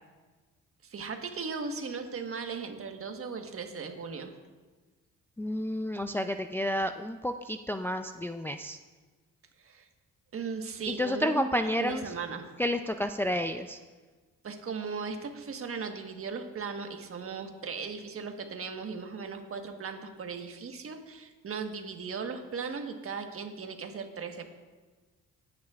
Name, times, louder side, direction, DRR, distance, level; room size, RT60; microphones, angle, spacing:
voice 1, 0.8-4.3 9.6-9.9 10.3-12.5 14.4-24.5, right 5 dB, 45° right, 5 dB, 1.4 m, -37 dB
voice 2, 5.4-8.8 10.9-12.0 12.6-13.8, left 1 dB, 5° left, 7 dB, 0.4 m, -30 dB
19.0 x 9.6 x 2.5 m, 1.3 s
cardioid pair, 90°, 30 cm